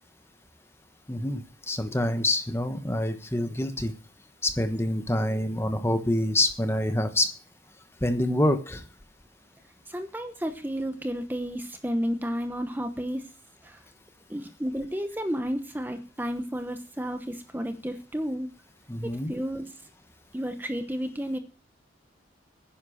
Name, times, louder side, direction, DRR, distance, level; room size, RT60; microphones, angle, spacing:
voice 1, 1.1-3.9 4.4-7.3 8.0-8.8 18.9-19.3, left 1 dB, 15° left, 9 dB, 1.1 m, -26 dB
voice 2, 9.9-13.3 13.6-13.8 14.3-18.5 19.0-19.7 20.3-21.4, equal, 10° right, 7 dB, 1.0 m, -32 dB
10.5 x 10.5 x 6.4 m, 0.35 s
head